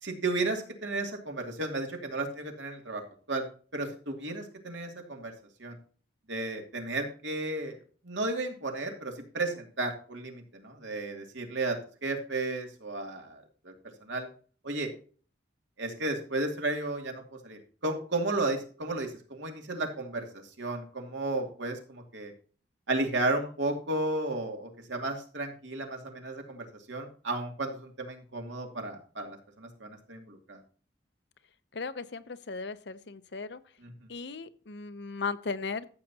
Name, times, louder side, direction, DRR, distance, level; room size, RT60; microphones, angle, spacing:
voice 1, 0.0-3.0 3.3-3.5 3.7-5.3 5.6-5.8 6.3-7.8 8.0-13.7 14.0-14.3 14.6-14.9 15.8-22.3 22.9-30.6, right 2 dB, 80° right, 3 dB, 2.5 m, -33 dB
voice 2, 31.7-33.6 34.1-35.9, left 4 dB, 65° left, 13 dB, 0.7 m, -37 dB
14.0 x 7.8 x 2.8 m, 0.40 s
head